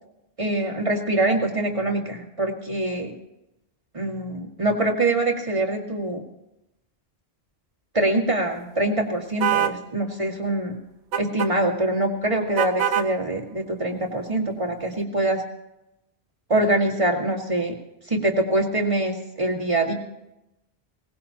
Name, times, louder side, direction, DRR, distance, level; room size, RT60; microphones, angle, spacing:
voice 1, 0.4-3.1 3.9-6.2 7.9-10.8 11.2-15.4 16.5-17.8 18.1-19.9, right 1 dB, 30° right, 1 dB, 2.2 m, -24 dB
sound 1, 9.4-9.8 11.1-11.5 12.6-13.1, right 9 dB, 90° right, 1.0 m, -23 dB
21.5 x 18.5 x 2.9 m, 0.89 s
omnidirectional pair, 1.1 m